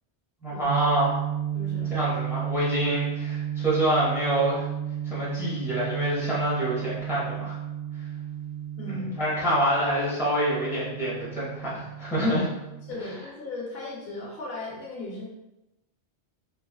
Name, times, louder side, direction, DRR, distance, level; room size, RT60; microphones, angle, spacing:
voice 1, 0.4-1.2 1.9-4.7 5.0-7.6 8.9-12.5, equal, 5° right, -8 dB, 0.7 m, -26 dB
sound 1, 0.6-12.9, right 10 dB, 75° right, 1.0 m, -33 dB
voice 2, 1.5-1.9 8.8-9.1 12.9-15.3, left 2 dB, 65° left, -3 dB, 0.8 m, -36 dB
2.9 x 2.3 x 2.2 m, 0.96 s
omnidirectional pair, 1.1 m